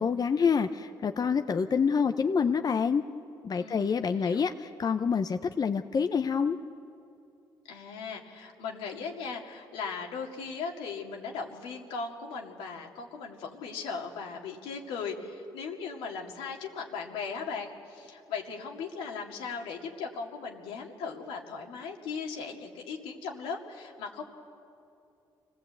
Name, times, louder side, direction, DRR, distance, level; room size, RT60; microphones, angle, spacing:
voice 1, 0.0-3.0 3.4-6.6, left 6 dB, 45° left, 7 dB, 0.8 m, -27 dB
voice 2, 3.6-4.5 7.7-24.2, left 5 dB, 85° left, 1 dB, 2.2 m, -38 dB
25.5 x 17.5 x 8.2 m, 2.6 s
supercardioid pair, 60°, 9 cm